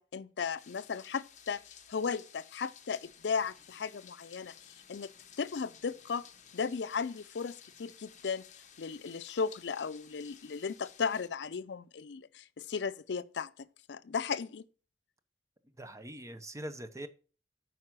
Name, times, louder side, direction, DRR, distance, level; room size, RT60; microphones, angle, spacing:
voice 1, 0.0-5.1 5.4-6.3 6.5-8.4 8.8-13.5 13.9-14.6, left 5 dB, 70° left, 0.5 m, -36 dB
sound 1, 0.6-11.3, left 8 dB, 45° left, 1.1 m, -56 dB
voice 2, 15.8-17.1, right 1 dB, 15° right, 0.8 m, -42 dB
9.3 x 4.8 x 6.0 m
head